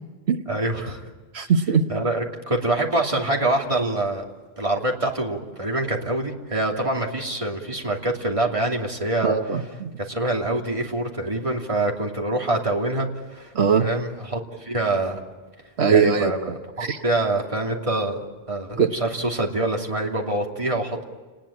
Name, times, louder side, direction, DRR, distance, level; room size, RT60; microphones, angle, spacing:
voice 1, 0.5-1.0 1.9-4.2 4.6-9.4 10.0-13.5 13.8-15.2 15.9-18.2 18.5-21.0, right 2 dB, 30° right, 0 dB, 2.9 m, -25 dB
voice 2, 1.3-1.8 9.2-9.9 13.5-13.9 15.8-16.3 16.8-17.0 18.8-18.9, right 6 dB, 85° right, 6 dB, 1.4 m, -20 dB
30.0 x 20.0 x 8.8 m, 1.3 s
omnidirectional pair, 1.1 m